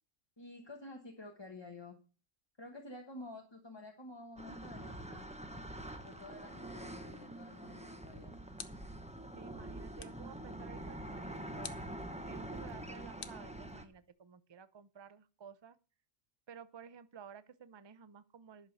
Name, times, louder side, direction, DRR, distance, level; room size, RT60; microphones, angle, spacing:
voice 1, 0.4-2.0 2.6-5.6 6.0-8.5, left 2 dB, 20° left, 3 dB, 1.2 m, -51 dB
sound 1, 4.4-13.8, right 1 dB, 5° right, 1.0 m, -45 dB
sound 2, 8.6-9.1 10.0-10.3 11.6-12.0 13.2-14.1, left 6 dB, 45° left, 1.0 m, -50 dB
voice 2, 9.4-11.8 12.3-15.8 16.5-18.7, right 7 dB, 30° right, 14 dB, 0.5 m, -54 dB
11.0 x 6.7 x 6.5 m, 0.36 s
omnidirectional pair, 1.4 m